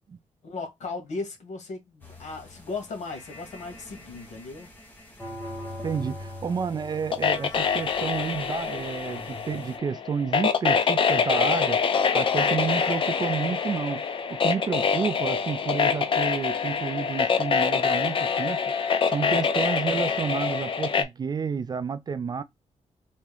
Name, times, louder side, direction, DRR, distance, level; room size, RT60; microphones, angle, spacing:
voice 1, 0.4-4.7, left 3 dB, 75° left, 1.7 m, -36 dB
sound 1, 2.0-9.8, left 1 dB, 15° left, 1.3 m, -42 dB
voice 2, 5.8-11.8 12.1-14.0 14.3-18.6 19.1-22.4, right 6 dB, 35° right, 0.3 m, -30 dB
sound 2, 7.1-21.0, left 6 dB, 45° left, 0.6 m, -25 dB
3.5 x 2.7 x 3.3 m
wide cardioid pair, 145°, 12 cm